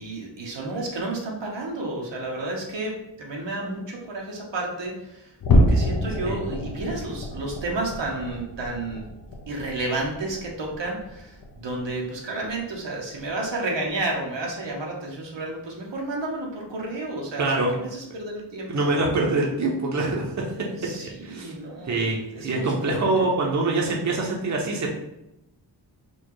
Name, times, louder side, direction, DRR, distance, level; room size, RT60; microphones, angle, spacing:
voice 1, 0.0-9.1 9.5-17.5 17.7-18.9 20.8-22.1 22.3-23.3, right 2 dB, 85° right, -1 dB, 1.1 m, -31 dB
sound 1, 5.4-12.1 12.4-12.7 13.1-13.3 13.8-14.0, equal, 55° left, 0.8 m, -27 dB
voice 2, 17.4-17.7 18.7-20.3 21.2-21.5 21.9-24.9, right 2 dB, 40° right, -1 dB, 0.8 m, -24 dB
4.3 x 2.4 x 4.7 m, 0.85 s
wide cardioid pair, 120°, 43 cm